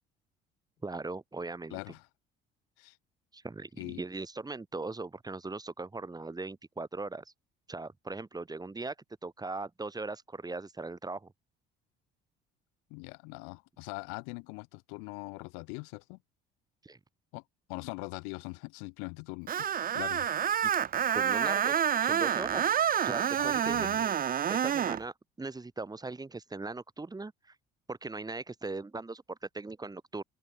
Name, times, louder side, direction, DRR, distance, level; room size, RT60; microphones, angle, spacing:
voice 1, 0.8-1.8 3.3-7.2 7.7-8.9 9.2-11.3 16.8-17.0 20.6-20.7 21.1-22.7 23.0-24.2 24.5-27.5 27.9-30.2, right 3 dB, 20° right, 5.9 m, -39 dB
voice 2, 1.7-2.1 2.8-3.0 3.8-4.0 12.9-16.2 17.3-17.4 17.7-19.5 19.9-20.3 23.4-24.0, left 38 dB, 90° left, 1.5 m, -42 dB
Screech, 19.5-25.0, right 9 dB, 45° right, 1.2 m, -28 dB
open air
supercardioid pair, 85°, 21 cm